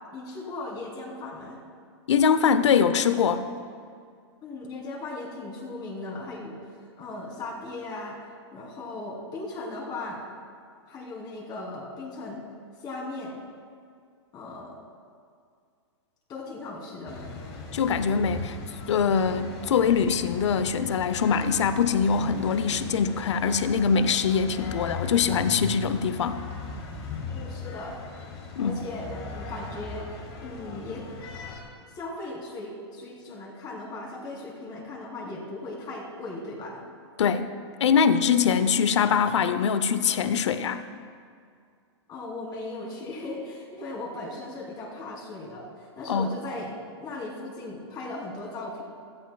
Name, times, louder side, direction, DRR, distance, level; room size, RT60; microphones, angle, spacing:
voice 1, 0.1-1.6 4.4-6.6 7.0-8.2 8.5-10.2 10.9-12.4 12.8-13.4 14.3-14.8 16.3-17.3 27.3-28.0 28.6-30.1 30.4-31.0 31.9-36.8 42.1-46.7 47.0-48.8, left 2 dB, 30° left, -2 dB, 2.9 m, -37 dB
voice 2, 2.1-3.4 17.7-18.6 18.9-26.4 28.6-28.8 37.2-37.5 37.8-40.8 46.1-46.3, left 6 dB, 85° left, 12 dB, 0.6 m, -23 dB
sound 1, 17.1-31.6, left 4 dB, 65° left, 2.4 m, -38 dB
16.5 x 13.0 x 2.3 m, 2.2 s
hypercardioid pair, 130°, 15 cm